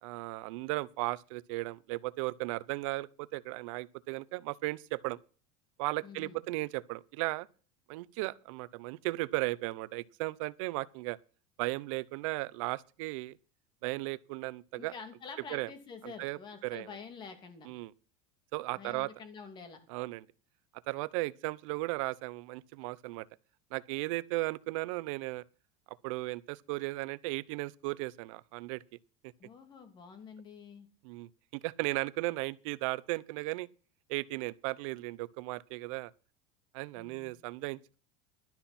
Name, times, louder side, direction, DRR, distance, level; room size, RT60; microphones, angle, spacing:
voice 1, 0.0-5.2 5.8-7.5 7.9-11.2 11.6-13.4 13.8-14.9 15.5-15.7 16.0-16.9 17.7-17.9 18.5-19.1 19.9-20.2 20.9-23.3 23.7-25.4 25.9-28.8 29.2-29.3 31.0-31.3 31.6-33.7 34.1-36.1 36.7-38.0, right 21 dB, 70° right, 0.7 m, -36 dB
voice 2, 6.0-6.4 14.7-17.7 18.7-19.8 29.4-30.9 37.0-37.3, left 5 dB, 25° left, 2.6 m, -48 dB
12.0 x 11.5 x 4.3 m
cardioid pair, 160°, 17 cm